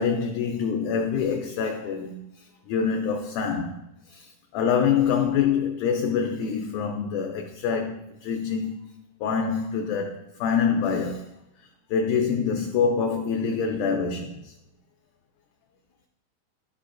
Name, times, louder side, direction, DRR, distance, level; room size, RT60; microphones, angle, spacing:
voice 1, 0.0-2.2 2.7-3.8 4.1-8.7 9.2-11.3 11.9-14.5, left 6 dB, 85° left, 1.8 m, -25 dB
12.0 x 5.1 x 2.5 m
omnidirectional pair, 4.1 m